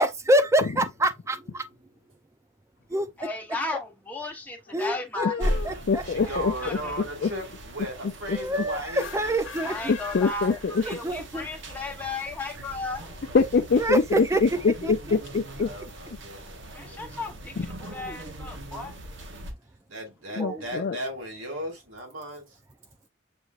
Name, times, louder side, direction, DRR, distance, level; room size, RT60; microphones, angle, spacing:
voice 1, 0.0-1.6 2.9-3.1 3.7-3.8 4.7-6.0 8.3-9.7 10.9-11.5 13.8-14.4 14.8-15.2 17.9-18.2 20.3-20.6, right 1 dB, 15° right, 0.5 m, -26 dB
voice 2, 3.2-5.6 6.2-7.0 9.6-13.2 16.7-19.0, left 3 dB, 10° left, 1.0 m, -35 dB
voice 3, 5.2-6.8 7.2-7.3 8.3-8.4 9.9-10.8 13.3-15.7 17.6-17.7 20.4-21.0, left 4 dB, 55° left, 0.4 m, -24 dB
sound 1, 5.4-19.5, equal, 65° right, 1.1 m, -38 dB
voice 4, 6.0-9.3 15.5-17.1 19.9-22.6, equal, 85° right, 2.3 m, -37 dB
sound 2, 8.9-11.2, left 6 dB, 70° left, 0.9 m, -41 dB
6.8 x 3.0 x 2.4 m
head